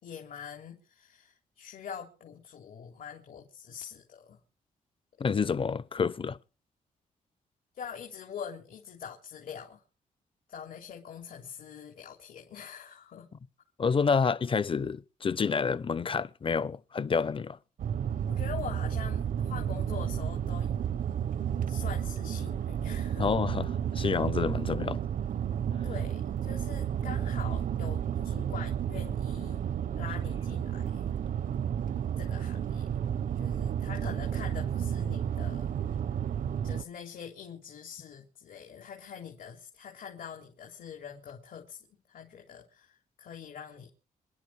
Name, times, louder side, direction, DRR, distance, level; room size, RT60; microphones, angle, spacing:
voice 1, 0.0-4.4 7.7-9.8 10.5-13.3 18.3-20.7 21.7-23.3 25.8-29.6 30.0-31.1 32.2-33.0 33.4-35.7 36.6-43.9, left 7 dB, 75° left, 3.6 m, -44 dB
voice 2, 5.2-6.4 13.8-17.6 23.2-23.7 23.9-25.0, left 5 dB, 35° left, 0.9 m, -28 dB
sound 1, 17.8-36.8, right 9 dB, 70° right, 0.8 m, -32 dB
26.5 x 11.0 x 4.9 m
cardioid pair, 90°, 15 cm